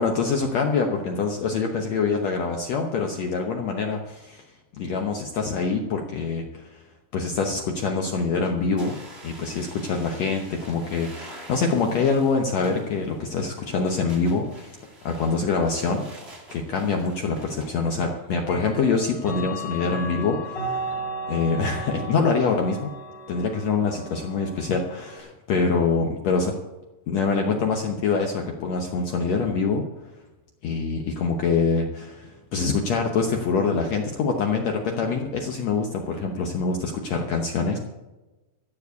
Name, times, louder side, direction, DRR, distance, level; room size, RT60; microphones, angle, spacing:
voice 1, 0.0-4.4 4.8-6.8 7.1-8.9 9.2-16.2 16.5-21.0 21.3-22.9 23.3-26.5 27.1-29.8 30.6-37.8, left 4 dB, 85° left, 2 dB, 1.5 m, -25 dB
sound 1, 8.8-17.7, right 1 dB, 20° right, 1.9 m, -46 dB
Clock, 17.0-17.1 18.4-25.2, right 1 dB, 30° left, 2.7 m, -35 dB
14.5 x 7.0 x 8.2 m, 1.1 s
omnidirectional pair, 4.6 m